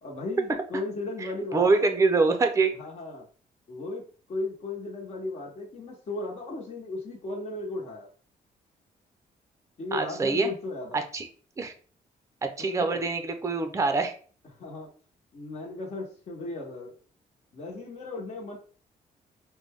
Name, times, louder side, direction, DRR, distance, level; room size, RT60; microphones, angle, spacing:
voice 1, 0.0-2.0 2.8-3.3 3.7-8.1 9.8-11.0 12.6-13.1 14.5-14.9 15.3-16.9 17.5-18.6, left 2 dB, 45° left, -3 dB, 1.1 m, -36 dB
voice 2, 1.5-2.7 9.9-10.5 10.9-11.3 11.6-11.7 12.4-14.1, right 4 dB, 20° right, 7 dB, 0.6 m, -24 dB
5.2 x 2.2 x 3.5 m, 0.42 s
cardioid pair, 140°, 15 cm